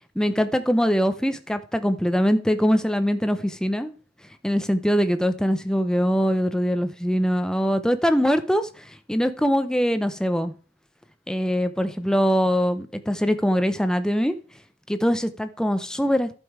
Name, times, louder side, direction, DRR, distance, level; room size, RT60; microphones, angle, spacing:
voice 1, 0.2-3.9 4.4-10.5 11.3-14.4 14.9-16.3, equal, 5° left, 9 dB, 0.6 m, -22 dB
11.0 x 5.4 x 4.7 m, 0.40 s
head